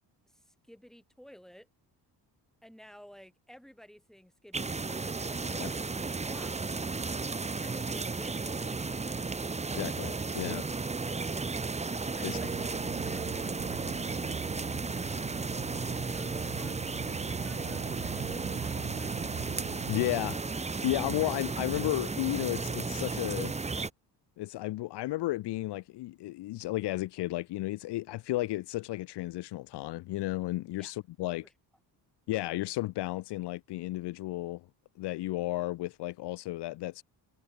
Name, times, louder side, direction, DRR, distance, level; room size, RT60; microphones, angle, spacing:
voice 1, 0.3-1.7 2.6-6.8 7.6-9.5 12.2-12.7 13.0-19.5 30.8-31.0 31.4-31.5, equal, ahead, 6.2 m, -53 dB
sound 1, 4.5-23.9, right 4 dB, 15° right, 2.1 m, -34 dB
voice 2, 9.7-10.7 12.2-12.4 19.9-20.4 20.8-23.5 24.4-31.4 32.3-34.7 35.0-37.0, left 17 dB, 75° left, 0.8 m, -33 dB
sound 2, 12.5-20.1, right 15 dB, 80° right, 2.1 m, -44 dB
cardioid pair, 170°, 41 cm